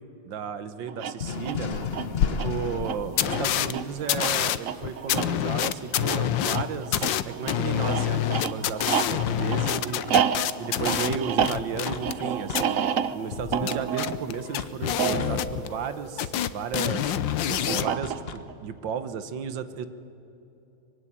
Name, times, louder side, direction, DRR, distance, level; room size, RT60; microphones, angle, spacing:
voice 1, 0.3-1.8 2.3-10.1 10.6-12.8 13.1-17.1 17.5-19.9, right 7 dB, 80° right, 12 dB, 1.8 m, -34 dB
sound 1, 0.9-16.7 17.7-18.5, right 7 dB, 55° right, 1.0 m, -30 dB
sound 2, 1.2-4.0 6.9-7.3 9.3-9.9 11.9-12.2 12.5-12.8 14.6-15.5 17.3-18.5, left 6 dB, 40° left, 1.0 m, -35 dB
sound 3, 1.7-1.8 2.2-2.3 2.8-2.9 3.2-3.7 4.1-12.2 12.5-12.6 13.3-15.9 16.2-17.9, left 11 dB, 80° left, 1.5 m, -27 dB
24.0 x 22.5 x 10.0 m, 2.9 s
omnidirectional pair, 2.0 m